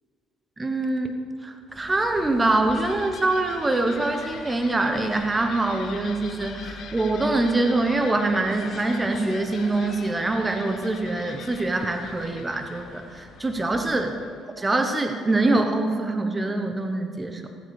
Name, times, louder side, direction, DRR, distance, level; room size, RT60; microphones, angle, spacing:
voice 1, 0.6-1.1 1.4-14.1 14.6-17.5, right 2 dB, 15° right, 5 dB, 1.0 m, -24 dB
sound 1, 1.7-13.9, left 1 dB, 10° left, 2.8 m, -46 dB
sound 2, 2.2-14.6, left 7 dB, 65° left, 1.3 m, -44 dB
16.5 x 9.6 x 6.5 m, 2.1 s
cardioid pair, 130°, 0 cm